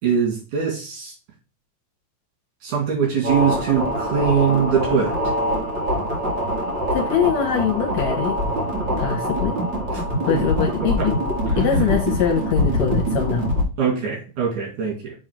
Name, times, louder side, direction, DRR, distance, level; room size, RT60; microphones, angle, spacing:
voice 1, 0.0-1.1 2.6-5.2 11.5-11.9 13.8-15.1, right 7 dB, 85° right, -3 dB, 3.9 m, -22 dB
sound 1, 3.2-13.6, equal, 40° right, 2.3 m, -24 dB
voice 2, 6.9-8.4 9.0-9.6 10.3-11.2 11.6-13.5, left 7 dB, 70° left, 2 dB, 2.2 m, -22 dB
7.0 x 3.2 x 5.9 m, 0.33 s
omnidirectional pair, 3.4 m